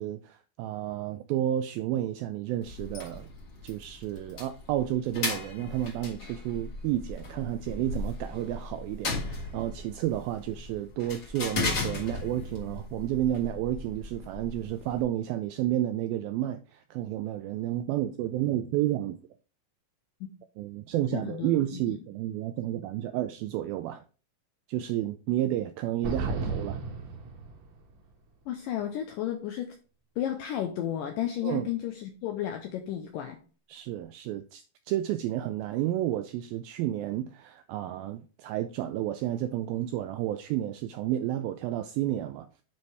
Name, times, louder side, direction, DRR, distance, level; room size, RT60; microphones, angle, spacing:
voice 1, 0.0-3.3 3.6-19.2 20.6-24.0 24.7-26.8 31.4-31.7 33.7-42.5, right 13 dB, 85° right, 2.1 m, -31 dB
sound 1, 2.6-15.0, left 3 dB, 55° left, 1.1 m, -37 dB
voice 2, 21.1-21.8 28.5-29.8 30.2-33.4, left 11 dB, 85° left, 1.9 m, -33 dB
sound 2, 26.0-28.0, right 4 dB, 60° right, 1.9 m, -33 dB
9.5 x 4.6 x 3.3 m
omnidirectional pair, 4.7 m